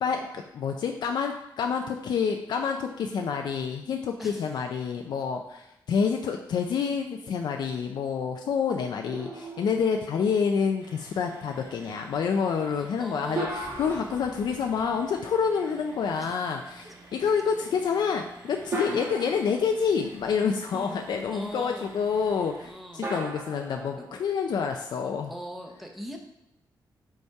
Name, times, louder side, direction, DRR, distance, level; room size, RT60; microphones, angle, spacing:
voice 1, 0.0-25.3, left 6 dB, 70° left, 3 dB, 0.5 m, -28 dB
sound 1, 9.1-10.6 13.3-15.4 17.0-17.1 18.7-20.6 23.0-25.0, right 2 dB, 35° right, 1.3 m, -38 dB
sound 2, 10.8-22.7, right 2 dB, 80° right, 2.3 m, -51 dB
voice 2, 12.6-14.1 16.2-16.3 16.8-16.9 17.5-17.6 18.8-19.1 20.7-21.0 21.3-21.9 22.6-23.1 24.0-24.1 25.3-26.2, equal, ahead, 2 dB, 0.8 m, -41 dB
sound 3, 13.3-16.2, left 2 dB, 25° left, 0.8 m, -51 dB
5.3 x 4.9 x 4.7 m, 0.87 s
wide cardioid pair, 165°, 8 cm